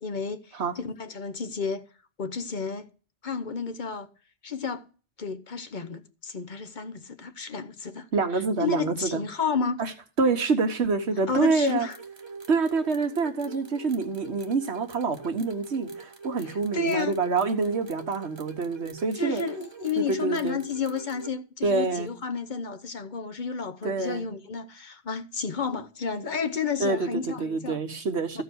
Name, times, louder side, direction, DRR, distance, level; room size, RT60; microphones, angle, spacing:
voice 1, 0.0-1.8 2.2-2.9 3.2-4.1 4.4-4.9 5.2-8.1 8.3-9.8 11.3-12.0 16.5-17.1 19.2-27.8 28.3-28.4, left 5 dB, 50° left, 0.9 m, -31 dB
voice 2, 8.1-9.2 9.8-9.9 10.2-11.9 12.5-19.4 20.0-20.6 21.6-22.1 23.8-24.3 26.8-28.4, right 4 dB, 90° right, 1.6 m, -26 dB
sound 1, 11.5-21.3, right 4 dB, 25° right, 1.0 m, -44 dB
14.0 x 4.8 x 6.2 m
omnidirectional pair, 1.1 m